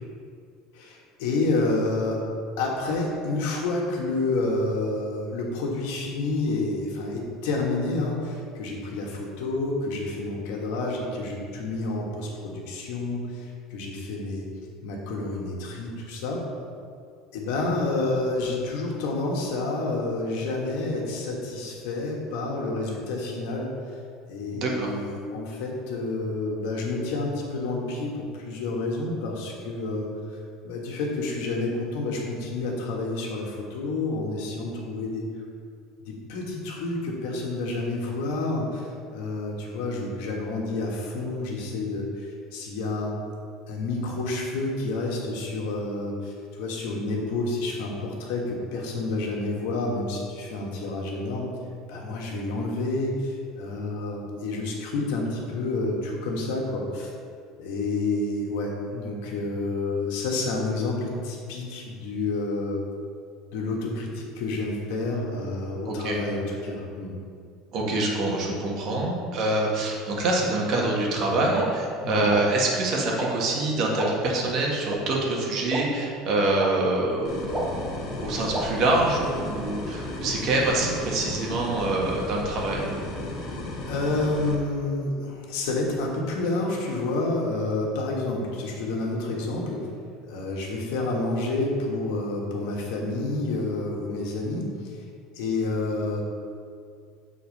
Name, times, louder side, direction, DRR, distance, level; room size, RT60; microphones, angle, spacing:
voice 1, 0.7-2.2 2.6-14.5 14.8-16.4 17.3-23.7 24.3-30.1 30.6-35.2 36.0-43.2 43.7-51.5 51.9-57.1 57.6-62.8 63.5-67.1 72.0-72.3 83.8-89.8 90.3-94.9 95.3-96.2, left 2 dB, 80° left, -1 dB, 1.5 m, -29 dB
voice 2, 24.5-24.9 65.8-66.2 67.7-77.9 78.2-82.9, right 2 dB, 50° right, -2 dB, 1.5 m, -25 dB
sound 1, 71.6-71.7 72.3-72.4 73.2-73.3 74.0-74.1 74.9-75.0 75.7-75.8 76.6-76.7 77.5-77.7 78.5-78.6, right 2 dB, 15° right, 1.0 m, -28 dB
sound 2, 77.2-84.5, left 2 dB, 45° left, 1.3 m, -34 dB
7.2 x 4.0 x 5.3 m, 2.3 s
cardioid pair, 140°, 0 cm